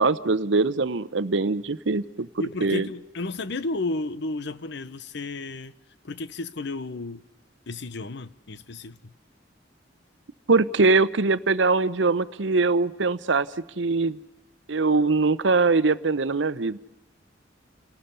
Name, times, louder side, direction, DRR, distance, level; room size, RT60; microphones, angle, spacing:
voice 1, 0.0-2.3 2.6-2.9 10.5-13.5 13.8-14.2 14.7-16.8, right 3 dB, 70° right, 0.8 m, -22 dB
voice 2, 2.4-5.7 6.0-7.2 7.7-9.1, left 3 dB, 65° left, 0.9 m, -32 dB
30.0 x 18.5 x 6.9 m
head